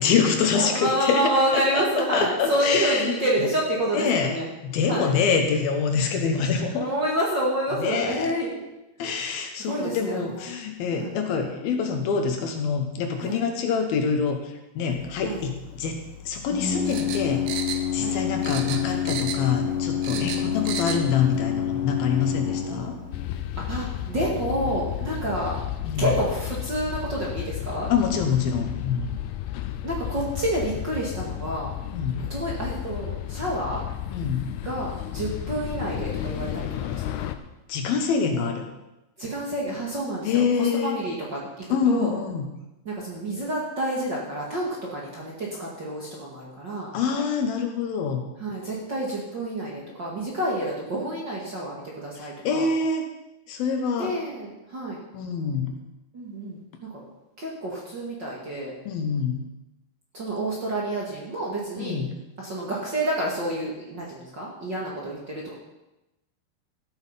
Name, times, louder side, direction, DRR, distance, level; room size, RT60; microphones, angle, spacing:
voice 1, 0.0-3.2 3.9-4.4 4.6-6.9 7.7-8.3 9.0-17.5 17.9-23.0 25.8-26.1 27.9-29.1 31.9-32.3 34.1-34.5 37.7-38.7 40.2-41.0 41.7-42.5 46.9-48.2 52.2-53.1 53.5-54.2 55.1-55.7 58.9-59.4 61.8-62.1, left 6 dB, 70° left, 4 dB, 2.9 m, -25 dB
voice 2, 0.5-4.5 4.9-5.1 6.7-8.7 9.6-10.4 10.9-11.1 13.2-13.4 15.2-15.4 18.0-18.2 20.1-20.8 23.6-25.5 26.0-27.9 29.8-31.7 32.1-33.8 34.6-37.3 39.2-42.2 42.8-46.9 48.4-52.7 54.0-55.0 56.1-57.0 57.4-58.7 60.1-62.0 62.4-65.6, right 1 dB, 35° right, -4 dB, 2.0 m, -29 dB
Organ, 14.9-25.1, left 9 dB, 55° left, 1.6 m, -29 dB
sound 1, 16.9-18.2 18.4-19.6 19.8-21.0 21.4-21.5, right 8 dB, 75° right, 2.8 m, -33 dB
sound 2, 23.1-37.4, left 12 dB, 85° left, 2.7 m, -33 dB
14.5 x 8.8 x 5.7 m, 0.96 s
omnidirectional pair, 4.6 m